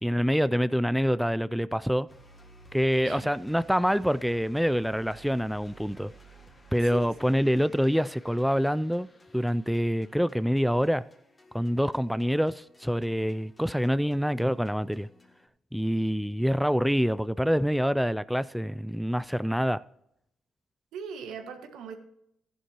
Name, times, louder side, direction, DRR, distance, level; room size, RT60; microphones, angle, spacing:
voice 1, 0.0-2.1 2.7-6.1 6.7-9.1 9.3-11.0 11.5-15.1 15.7-19.8, equal, ahead, 0.3 m, -26 dB
sound 1, 2.1-15.5, right 1 dB, 25° left, 1.6 m, -56 dB
voice 2, 20.9-21.9, right 6 dB, 85° right, 1.7 m, -39 dB
14.0 x 11.0 x 3.0 m
cardioid pair, 90°, 0 cm